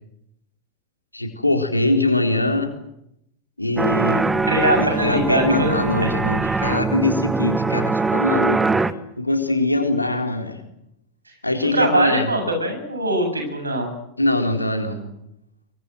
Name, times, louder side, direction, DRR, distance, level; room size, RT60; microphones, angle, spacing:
voice 1, 1.1-2.7 3.6-4.3 4.7-8.6 9.2-10.6 11.4-12.3 14.2-15.0, left 2 dB, 85° left, 4 dB, 4.1 m, -22 dB
sound 1, 3.8-8.9, right 3 dB, 10° right, 1.3 m, -22 dB
voice 2, 4.5-6.1 11.7-13.9, right 1 dB, 80° right, 4 dB, 7.6 m, -22 dB
24.5 x 24.0 x 7.9 m, 0.80 s
figure-of-eight pair, 90°, 0 cm